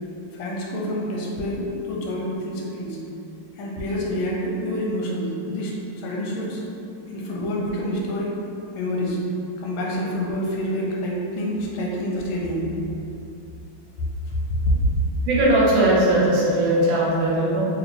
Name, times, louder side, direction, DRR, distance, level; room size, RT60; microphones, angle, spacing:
voice 1, 0.3-3.0 3.5-6.6 7.1-8.4 8.7-9.2 9.6-12.7 14.3-14.7, equal, 90° left, -3 dB, 1.5 m, -27 dB
voice 2, 15.2-17.7, right 1 dB, 75° right, -6 dB, 1.5 m, -19 dB
4.1 x 2.5 x 3.2 m, 2.8 s
omnidirectional pair, 2.2 m